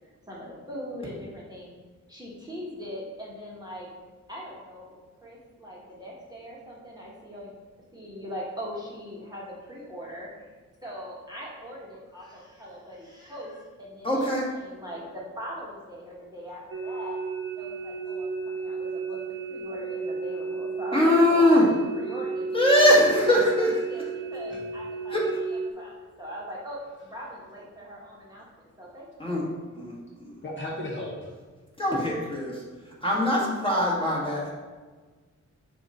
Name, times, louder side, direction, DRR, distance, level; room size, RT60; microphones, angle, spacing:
voice 1, 0.3-1.7 2.1-3.9 4.3-4.9 5.2-7.5 7.9-10.5 10.8-17.2 17.5-19.2 19.5-29.4 29.7-30.1, equal, 15° right, -5 dB, 1.2 m, -41 dB
voice 2, 14.0-14.5 20.9-21.7 22.5-23.7 25.1-25.2 29.2-29.4 29.8-29.9 30.2-30.3 31.8-32.6 33.0-34.5, left 1 dB, 15° left, -5 dB, 1.6 m, -21 dB
sound 1, 16.7-25.7, right 5 dB, 45° right, 0.6 m, -33 dB
voice 3, 30.4-31.3, left 1 dB, 40° left, -4 dB, 1.0 m, -34 dB
7.0 x 2.6 x 5.5 m, 1.4 s
wide cardioid pair, 150°, 30 cm